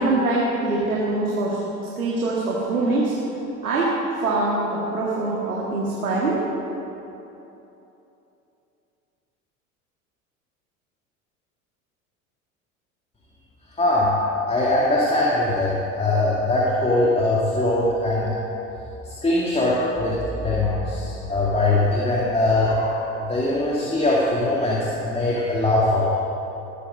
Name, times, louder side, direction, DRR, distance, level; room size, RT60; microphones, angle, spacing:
voice 1, 0.0-1.6 2.0-3.1 3.6-6.4, right 2 dB, 90° right, -5 dB, 2.0 m, -23 dB
voice 2, 13.8-14.2 14.5-18.3 19.2-20.2 20.4-26.2, left 2 dB, 15° left, -6 dB, 2.4 m, -21 dB
19.5 x 8.3 x 5.3 m, 3.0 s
hypercardioid pair, 75°, 42 cm